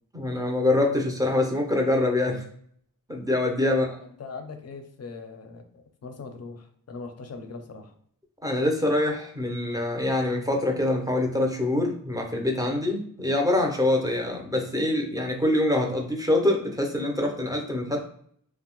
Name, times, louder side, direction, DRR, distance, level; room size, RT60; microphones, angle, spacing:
voice 1, 0.1-2.4 3.1-3.9 8.4-18.0, left 1 dB, 10° right, 1 dB, 0.5 m, -25 dB
voice 2, 3.7-7.9, left 4 dB, 50° left, 6 dB, 0.4 m, -40 dB
2.6 x 2.0 x 2.9 m, 0.64 s
wide cardioid pair, 110°, 34 cm